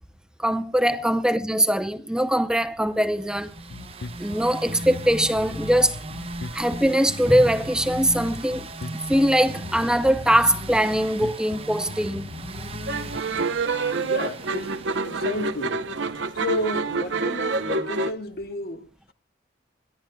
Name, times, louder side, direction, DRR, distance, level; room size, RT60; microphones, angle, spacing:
voice 1, 0.4-3.5 4.2-6.0 6.5-8.7 9.1-12.3, equal, 5° right, 0.6 m, -22 dB
sound 1, 3.0-15.9, right 2 dB, 30° right, 0.8 m, -38 dB
Bass guitar, 3.6-13.2, left 3 dB, 75° left, 0.7 m, -38 dB
sound 2, 12.9-18.1, right 3 dB, 85° right, 0.8 m, -27 dB
voice 2, 14.0-15.8 16.3-19.1, left 1 dB, 55° left, 1.4 m, -32 dB
27.5 x 12.0 x 2.2 m
head